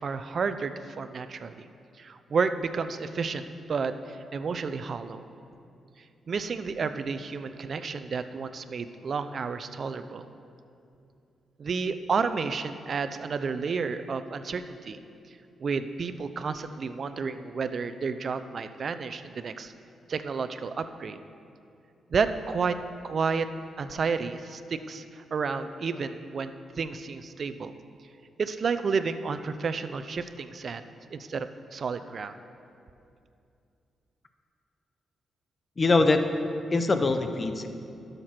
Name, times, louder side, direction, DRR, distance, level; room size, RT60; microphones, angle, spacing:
voice 1, 0.0-1.6 2.0-5.2 6.3-10.3 11.6-15.0 15.6-19.7 20.1-21.2 22.1-22.8 23.0-23.5 23.8-27.7 28.4-32.3, right 5 dB, 55° right, 11 dB, 0.5 m, -31 dB
voice 2, 35.8-36.2 36.7-37.7, left 3 dB, 40° left, 8 dB, 0.8 m, -23 dB
11.5 x 6.7 x 5.9 m, 2.6 s
cardioid pair, 65°, 0 cm